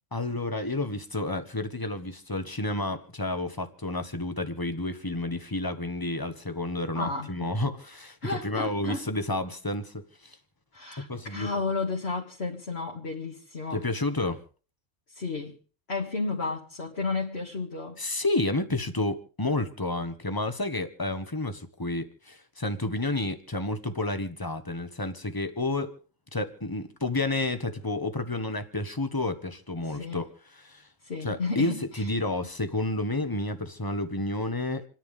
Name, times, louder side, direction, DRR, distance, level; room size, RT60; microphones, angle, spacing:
voice 1, 0.1-10.4 11.0-11.5 13.7-14.4 18.0-25.9 26.3-30.9 31.2-34.9, left 2 dB, 15° left, 1.4 m, -30 dB
voice 2, 7.0-7.5 8.2-9.1 10.7-13.8 15.1-15.6 15.9-18.0 29.9-30.2 31.0-32.1, left 3 dB, 55° left, 2.3 m, -32 dB
28.5 x 10.5 x 3.7 m
omnidirectional pair, 1.3 m